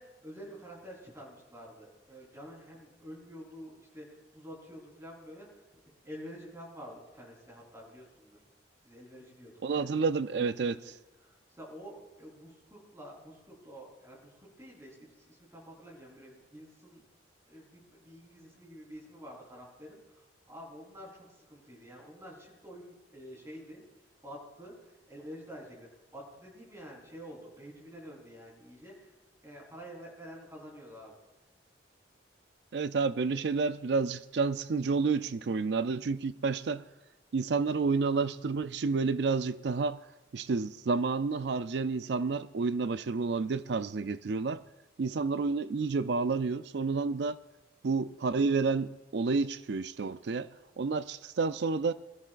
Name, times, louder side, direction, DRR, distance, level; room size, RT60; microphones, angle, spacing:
voice 1, 0.0-5.5 6.0-8.4 8.8-10.0 10.6-10.9 11.2-17.0 17.5-20.2 20.5-23.8 24.2-25.9 26.1-28.9 29.4-31.1, equal, 15° right, 3.9 m, -48 dB
voice 2, 9.6-10.8 32.7-36.8 37.3-40.0 40.3-44.6 45.0-47.4 47.8-50.5 50.8-51.9, right 4 dB, 60° right, 0.4 m, -30 dB
21.5 x 13.5 x 2.5 m
head